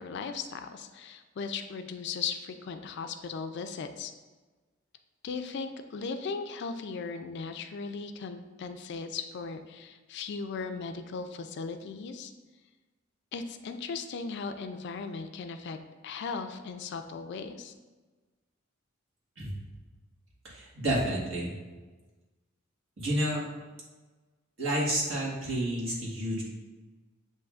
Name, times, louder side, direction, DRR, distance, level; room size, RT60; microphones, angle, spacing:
voice 1, 0.0-4.1 5.2-12.3 13.3-15.8 16.0-17.7, left 5 dB, 60° left, 8 dB, 0.3 m, -37 dB
voice 2, 20.4-21.5 23.0-23.4 24.6-26.4, right 1 dB, 70° right, -5 dB, 1.5 m, -30 dB
7.5 x 2.7 x 2.4 m, 1.3 s
head